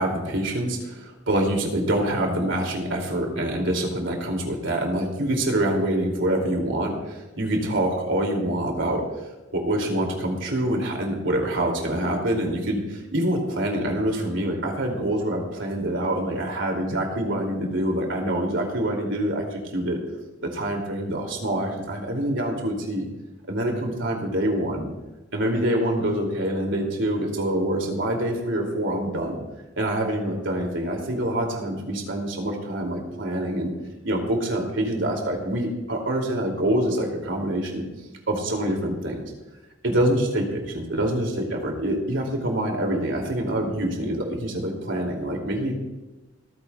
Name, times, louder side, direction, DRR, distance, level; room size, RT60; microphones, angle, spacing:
voice 1, 0.0-9.0 9.5-20.0 20.4-23.1 23.5-24.9 25.3-29.4 29.8-33.7 34.0-37.8 38.3-39.3 39.8-45.7, right 1 dB, 75° right, 2 dB, 2.7 m, -25 dB
27.0 x 9.4 x 2.3 m, 1.1 s
head